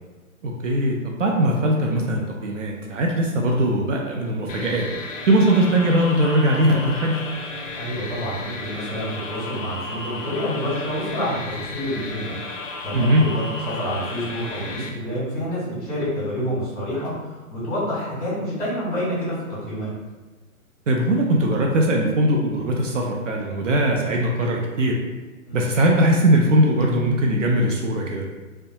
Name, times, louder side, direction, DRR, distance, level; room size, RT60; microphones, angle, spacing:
voice 1, 0.4-4.9 5.3-7.2 12.9-13.3 20.9-25.0 25.5-28.3, right 1 dB, 60° right, 0 dB, 0.5 m, -20 dB
sound 1, 4.5-14.9, left 3 dB, 60° left, 0.5 m, -34 dB
voice 2, 7.7-12.3 12.8-19.9 25.5-25.6, equal, 25° left, -8 dB, 1.4 m, -28 dB
2.6 x 2.2 x 2.8 m, 1.2 s
hypercardioid pair, 160°, 44 cm